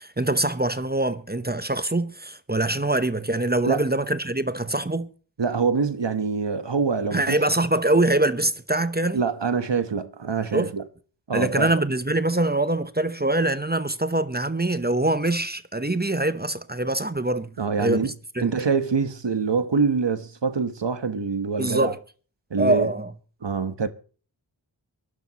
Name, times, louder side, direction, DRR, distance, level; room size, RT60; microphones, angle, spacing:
voice 1, 0.0-5.1 7.1-9.2 10.5-10.7 11.3-17.5 17.8-18.5 21.6-22.0 22.6-23.1, right 2 dB, 20° right, 0.9 m, -24 dB
voice 2, 5.4-7.4 9.1-10.8 11.3-11.7 17.6-18.1 18.4-21.9 22.5-22.9 23.4-23.9, right 5 dB, 70° right, 1.2 m, -25 dB
23.5 x 11.5 x 3.0 m
wide cardioid pair, 45°, 45 cm